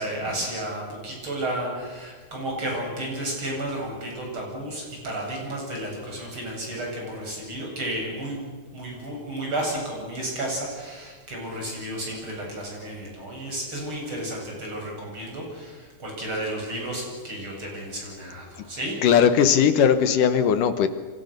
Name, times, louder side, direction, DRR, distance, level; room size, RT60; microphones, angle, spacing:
voice 1, 0.0-19.1, right 1 dB, 30° right, -1 dB, 8.8 m, -32 dB
voice 2, 19.0-20.9, left 8 dB, 70° left, 10 dB, 2.3 m, -18 dB
28.5 x 25.5 x 6.7 m, 1.4 s
omnidirectional pair, 4.6 m